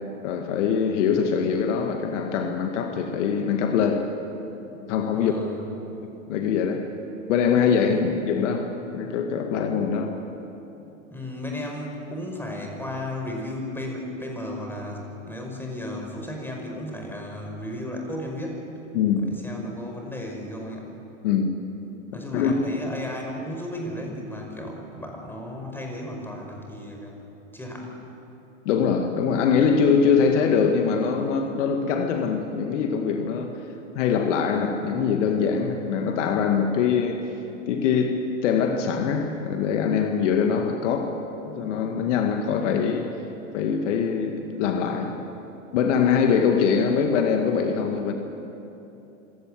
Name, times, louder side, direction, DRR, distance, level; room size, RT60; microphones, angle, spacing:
voice 1, 0.2-4.1 4.9-5.3 6.0-6.9 7.3-10.1 18.9-19.3 21.2-21.5 22.1-22.5 28.7-33.6 33.9-37.3 37.7-41.1 41.5-43.1 43.5-45.2 45.7-48.1, left 6 dB, 65° left, 2.0 m, -23 dB
voice 2, 5.1-5.7 7.9-8.0 11.1-18.6 19.3-20.9 22.1-27.2 27.5-28.0, left 1 dB, 5° left, 5.3 m, -34 dB
25.5 x 17.0 x 7.7 m
hypercardioid pair, 100°, 39 cm